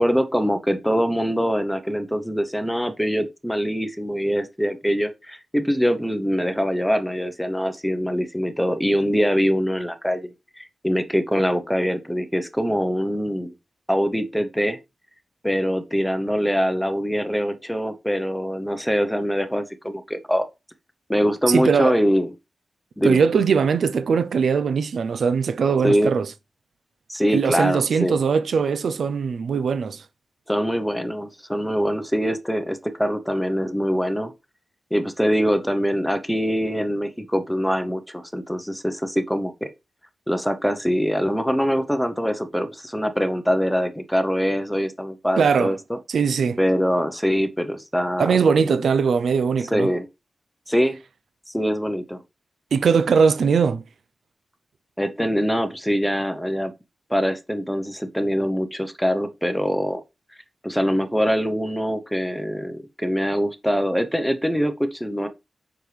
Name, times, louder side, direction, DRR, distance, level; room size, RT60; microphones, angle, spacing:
voice 1, 0.0-13.5 13.9-14.8 15.4-20.5 21.1-22.3 23.0-23.2 25.8-26.1 27.1-28.2 30.5-34.3 34.9-39.7 40.3-46.0 46.6-48.3 48.6-48.7 49.7-50.1 50.7-51.0 51.5-52.2 55.0-56.7 57.1-60.0 60.6-65.3, equal, 5° left, 0.9 m, -23 dB
voice 2, 21.5-22.0 23.0-26.3 27.3-30.0 45.4-45.7 46.1-46.6 48.2-49.9 52.7-53.8, right 6 dB, 90° right, 0.7 m, -20 dB
7.9 x 6.2 x 3.4 m
wide cardioid pair, 165°, 0 cm